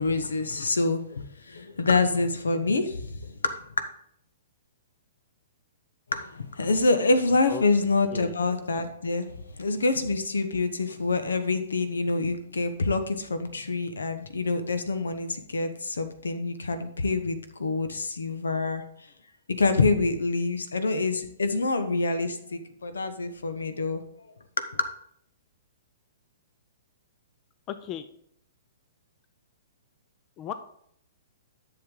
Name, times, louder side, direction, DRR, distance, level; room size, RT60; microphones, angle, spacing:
voice 1, 0.0-3.6 6.1-9.3 9.6-18.8 19.5-24.3 24.6-24.9, left 3 dB, 75° left, 9 dB, 1.1 m, -26 dB
voice 2, 27.7-28.1 30.4-30.5, left 11 dB, 30° left, 10 dB, 0.6 m, -35 dB
10.5 x 7.1 x 3.8 m, 0.69 s
figure-of-eight pair, 115°, 0 cm